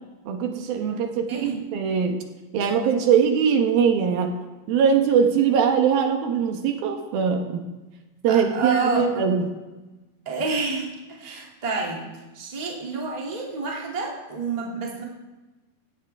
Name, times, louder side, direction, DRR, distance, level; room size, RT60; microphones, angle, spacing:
voice 1, 0.3-2.2 2.5-4.4 4.7-7.6 8.2-9.5, right 7 dB, 75° right, 4 dB, 3.0 m, -21 dB
voice 2, 8.3-9.0 10.3-10.9 11.2-12.0 12.3-15.0, right 4 dB, 15° right, -2 dB, 1.8 m, -28 dB
17.0 x 16.0 x 3.5 m, 1.1 s
omnidirectional pair, 4.4 m